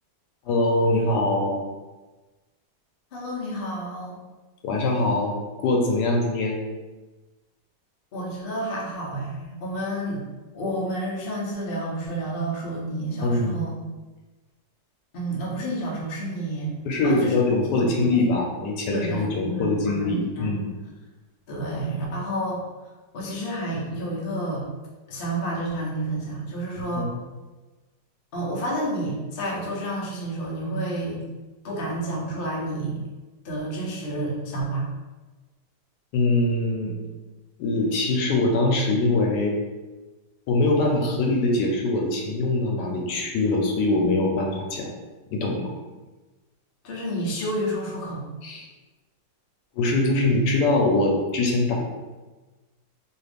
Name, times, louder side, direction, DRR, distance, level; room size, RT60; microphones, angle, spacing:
voice 1, 0.5-1.6 4.6-6.6 13.2-13.6 16.8-20.7 27.0-27.1 36.1-36.9 37.6-39.6 40.5-44.9 45.3-45.6 48.4-48.6 49.8-51.8, left 2 dB, 80° left, 1 dB, 1.2 m, -23 dB
voice 2, 3.1-4.2 8.1-10.2 10.5-13.7 15.1-16.7 17.0-17.4 17.8-17.9 18.8-20.5 21.5-22.6 23.1-24.7 25.1-27.1 28.3-31.2 31.6-33.0 33.4-34.9 46.8-48.2, right 1 dB, 55° left, -4 dB, 0.6 m, -30 dB
3.0 x 2.4 x 3.3 m, 1.2 s
omnidirectional pair, 1.8 m